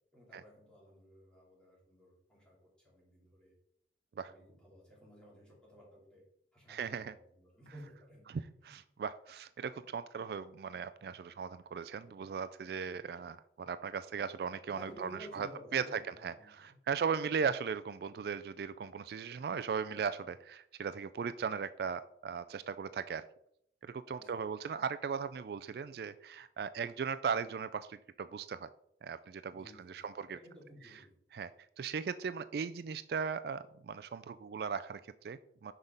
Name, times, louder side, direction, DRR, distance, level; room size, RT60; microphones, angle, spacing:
voice 1, 0.1-3.5 4.2-6.2 6.5-8.3 8.6-8.8 14.6-16.8 24.1-24.5 29.5-31.1, equal, 5° left, -5 dB, 2.8 m, -55 dB
voice 2, 6.7-7.1 8.3-15.5 15.7-23.2 23.8-28.7 29.0-30.4 31.3-31.5 31.8-35.7, right 6 dB, 60° right, 13 dB, 0.3 m, -38 dB
6.0 x 5.5 x 5.1 m, 0.73 s
head